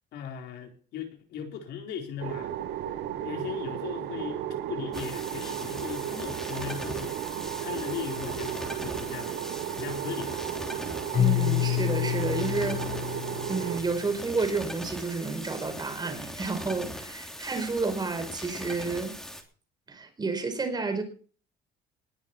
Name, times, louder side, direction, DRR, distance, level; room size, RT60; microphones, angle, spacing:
voice 1, 0.1-2.5 3.2-4.4 4.7-7.1 7.6-9.4 9.7-10.4, left 8 dB, 80° left, 3 dB, 4.2 m, -38 dB
sound 1, 2.2-13.8, right 11 dB, 90° right, 1.6 m, -34 dB
sound 2, 4.9-19.4, equal, 5° left, 3.2 m, -40 dB
Keyboard (musical), 11.1-14.1, left 15 dB, 55° left, 4.8 m, -28 dB
voice 2, 11.2-12.9 13.4-19.2 19.9-21.0, right 3 dB, 25° right, 7 dB, 4.7 m, -30 dB
20.0 x 7.5 x 5.9 m, 0.41 s
cardioid pair, 110°, 17 cm